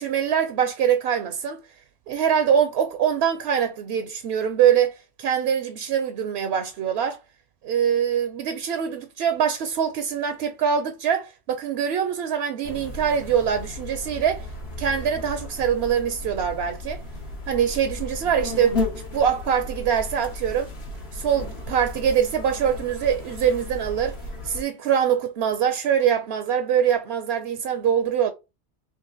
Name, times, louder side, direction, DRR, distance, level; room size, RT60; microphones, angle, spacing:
voice 1, 0.0-1.6 2.1-7.2 7.6-14.5 14.8-17.0 17.5-18.8 19.1-20.7 21.1-24.1 24.4-28.3, right 8 dB, 80° right, 0.8 m, -23 dB
sound 1, 12.6-24.6, left 2 dB, 75° left, 1.5 m, -34 dB
3.8 x 3.2 x 3.8 m
omnidirectional pair, 1.1 m